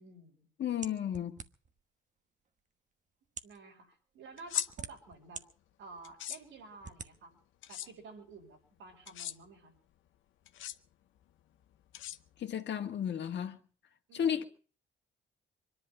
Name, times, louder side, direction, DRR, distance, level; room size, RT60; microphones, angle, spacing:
voice 1, 0.0-0.5 3.4-5.4 5.8-7.3 7.7-9.7 14.1-14.5, right 3 dB, 85° right, 5.5 m, -52 dB
voice 2, 0.6-1.4 12.4-13.6 14.1-14.4, left 9 dB, 60° left, 1.8 m, -33 dB
sound 1, 0.8-1.8 2.6-2.7 3.2-3.6 4.4-5.4 6.0-6.1 6.8-7.1, right 5 dB, 40° right, 1.2 m, -45 dB
sound 2, 4.4-4.7 6.0-6.4 7.6-7.9 9.1-9.4 10.5-10.8 11.9-12.5, left 12 dB, 75° left, 0.8 m, -37 dB
23.5 x 11.0 x 5.5 m
cardioid pair, 90°, 20 cm